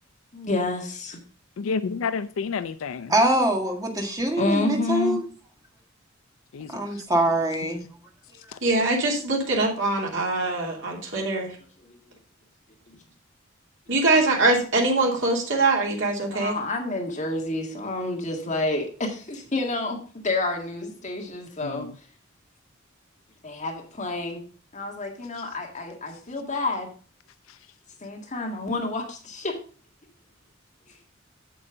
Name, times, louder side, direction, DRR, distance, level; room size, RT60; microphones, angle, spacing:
voice 1, 0.3-1.2 4.4-5.2 11.9-12.0 12.9-13.0 16.3-21.9 23.4-24.4 24.7-26.9 28.0-29.6, left 2 dB, 35° left, 1.8 m, -29 dB
voice 2, 1.6-3.1 6.5-6.8 8.5-8.6 21.6-21.9, left 5 dB, 75° left, 0.4 m, -30 dB
voice 3, 3.1-5.2 6.7-7.8, right 1 dB, 20° right, 1.7 m, -23 dB
voice 4, 8.6-11.5 13.9-16.5, right 2 dB, 65° right, 2.9 m, -23 dB
8.5 x 7.6 x 3.8 m
head